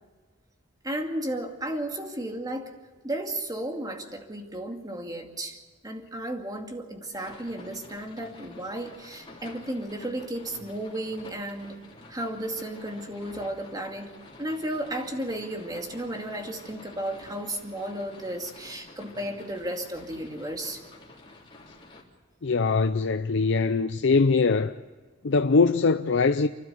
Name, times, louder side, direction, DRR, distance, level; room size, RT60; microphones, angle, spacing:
voice 1, 0.8-2.8 3.0-5.6 5.8-11.8 12.1-14.1 14.4-20.8, right 1 dB, 20° right, 2.3 m, -34 dB
sound 1, 7.1-22.0, left 2 dB, 25° left, 3.7 m, -49 dB
voice 2, 22.4-24.8 25.2-26.5, left 4 dB, 65° left, 0.6 m, -22 dB
29.5 x 12.5 x 8.1 m
head